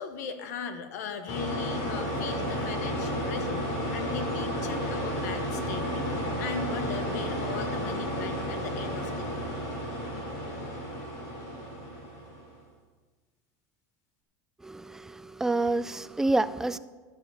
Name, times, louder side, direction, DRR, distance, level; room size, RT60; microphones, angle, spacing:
voice 1, 0.0-9.4, left 5 dB, 85° left, 8 dB, 1.4 m, -38 dB
sound 1, 1.3-12.5, equal, 55° left, 4.7 m, -32 dB
voice 2, 14.6-16.8, right 2 dB, 5° right, 14 dB, 0.3 m, -28 dB
12.5 x 7.5 x 6.9 m, 1.4 s
supercardioid pair, 165°, 9 cm